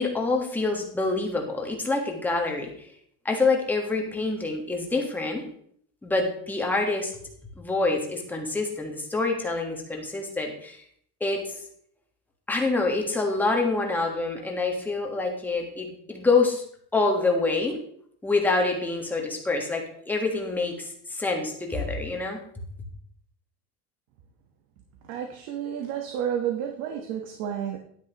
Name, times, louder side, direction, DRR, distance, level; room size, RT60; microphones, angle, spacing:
voice 1, 0.0-2.9 3.2-5.4 6.0-7.1 7.6-10.8 11.2-11.5 12.5-16.6 16.9-17.8 18.2-22.4, left 3 dB, 5° left, 1 dB, 1.4 m, -26 dB
voice 2, 25.0-27.8, right 9 dB, 65° right, 3 dB, 1.2 m, -31 dB
10.5 x 9.6 x 3.0 m, 0.64 s
cardioid pair, 165°, 30 cm